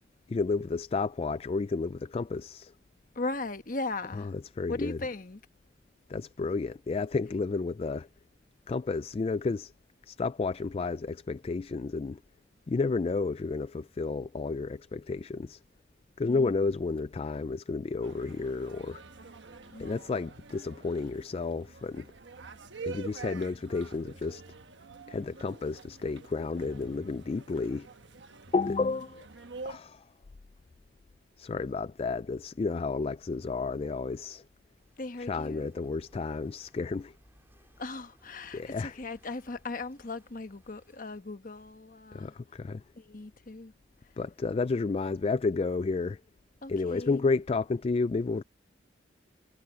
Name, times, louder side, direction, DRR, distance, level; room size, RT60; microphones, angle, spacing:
voice 1, 0.3-2.7 4.2-5.0 6.1-8.1 8.7-9.7 10.0-12.2 12.7-15.6 16.2-19.0 19.8-22.1 22.9-24.4 25.1-27.9 28.5-29.3 29.6-30.1 31.4-34.4 35.3-37.2 38.5-38.9 42.1-42.8 44.2-46.2 46.7-48.4, left 4 dB, 30° left, 0.3 m, -31 dB
voice 2, 3.1-4.3 4.7-5.4 16.2-16.5 19.7-20.0 35.0-35.7 37.8-42.4 42.9-43.7 44.0-44.2 46.6-47.3, left 2 dB, 50° left, 1.2 m, -38 dB
sound 1, 18.0-29.8, right 4 dB, 85° right, 1.2 m, -46 dB
Walk footsteps / Wind / Waves surf, 34.7-41.3, right 1 dB, 15° right, 2.9 m, -64 dB
head